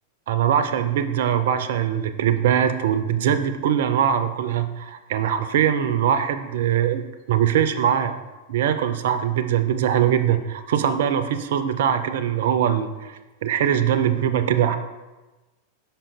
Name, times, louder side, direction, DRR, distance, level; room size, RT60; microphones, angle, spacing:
voice 1, 0.3-7.0 7.3-8.2 8.5-14.8, right 9 dB, 55° right, 10 dB, 0.4 m, -22 dB
5.5 x 4.9 x 3.5 m, 1.1 s
figure-of-eight pair, 90°, 0 cm